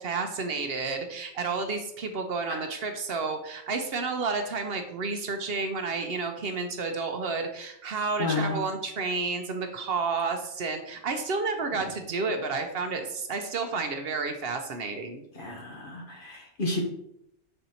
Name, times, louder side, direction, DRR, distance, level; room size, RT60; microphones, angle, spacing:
voice 1, 0.0-15.2, right 4 dB, 60° right, 5 dB, 0.8 m, -31 dB
voice 2, 8.2-8.6 15.4-16.8, left 3 dB, 50° left, 1 dB, 1.2 m, -31 dB
5.6 x 4.0 x 4.3 m, 0.77 s
omnidirectional pair, 1.2 m